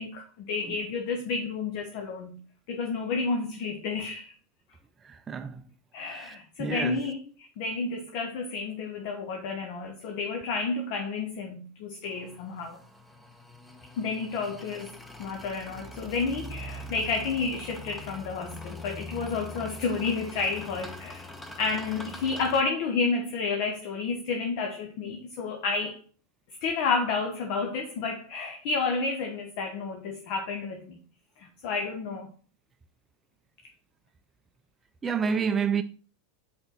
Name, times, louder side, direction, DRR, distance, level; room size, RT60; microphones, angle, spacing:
voice 1, 0.0-2.4 2.7-4.3 5.9-7.2 7.6-12.8 14.0-14.9 15.2-21.3 21.6-26.0 26.6-31.0 31.4-32.3, left 4 dB, 55° left, 0.9 m, -30 dB
voice 2, 5.0-5.6 6.0-7.0 35.0-35.8, right 6 dB, 20° right, 0.4 m, -29 dB
sound 1, 12.0-22.6, left 1 dB, 10° left, 0.8 m, -43 dB
5.6 x 4.4 x 3.9 m
hypercardioid pair, 90°, 0 cm